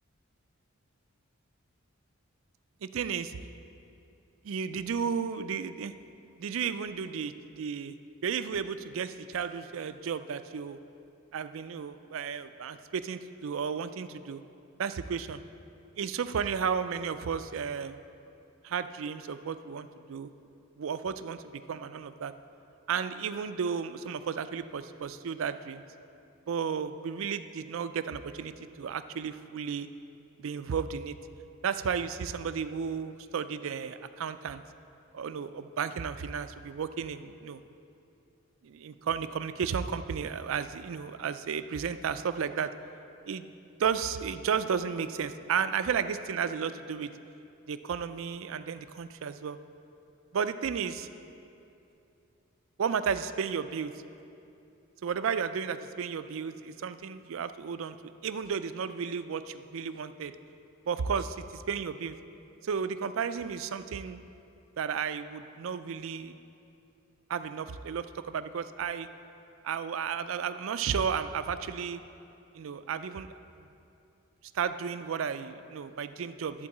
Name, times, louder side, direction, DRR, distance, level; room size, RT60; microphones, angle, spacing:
voice 1, 2.8-3.4 4.4-5.9 6.4-7.9 8.2-10.8 11.3-14.4 14.8-15.4 16.0-18.0 18.6-20.3 20.8-22.3 22.9-25.8 26.5-29.9 30.4-31.2 31.6-34.6 35.1-37.6 38.6-42.7 43.3-43.5 43.8-47.1 47.7-49.6 50.3-51.1 52.8-53.9 55.0-60.3 60.9-62.2 62.6-64.2 64.8-66.4 67.3-69.1 69.6-72.0 72.5-73.3 74.5-76.7, right 6 dB, 65° right, 11 dB, 0.4 m, -33 dB
11.5 x 4.6 x 7.2 m, 2.7 s
head